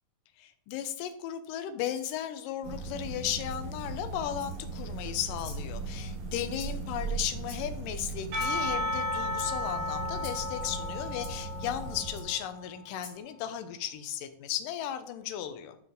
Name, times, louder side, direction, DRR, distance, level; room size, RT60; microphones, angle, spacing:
voice 1, 0.4-15.8, left 10 dB, 80° left, 9 dB, 2.3 m, -35 dB
Rattle (instrument), 1.9-2.2 3.5-3.6 4.3-4.8 5.3-5.7 6.6-6.9 7.4-7.9 8.3-8.6 9.3-9.5 10.2-10.4 11.2-11.3 12.1-12.3 12.9-13.2, left 5 dB, 50° left, 2.2 m, -48 dB
sound 1, 2.6-12.2, right 3 dB, 50° right, 1.8 m, -38 dB
Percussion / Church bell, 8.3-12.7, left 2 dB, 75° right, 5.6 m, -34 dB
13.0 x 4.4 x 3.9 m, 0.71 s
omnidirectional pair, 4.1 m